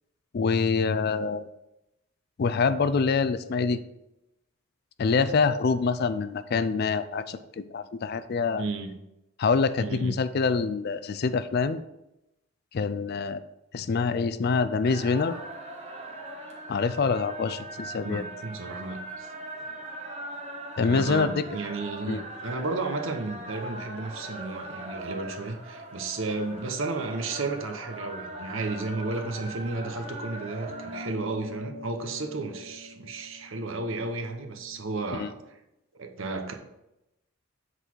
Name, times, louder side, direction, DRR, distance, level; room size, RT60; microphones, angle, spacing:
voice 1, 0.3-1.5 2.4-3.8 5.0-8.6 9.4-11.8 12.7-13.4 13.7-15.3 16.7-18.2 20.8-21.4 22.1-22.2 35.1-35.3, left 5 dB, 45° left, 13 dB, 0.3 m, -25 dB
voice 2, 8.6-8.9 9.8-10.2 18.0-19.3 20.8-35.6 35.9-36.5, right 3 dB, 65° right, 5 dB, 0.9 m, -33 dB
sound 1, 14.8-31.1, right 1 dB, 30° right, 1.2 m, -40 dB
sound 2, 30.6-35.4, left 1 dB, 85° right, 1.7 m, -45 dB
7.8 x 4.1 x 4.6 m, 0.89 s
head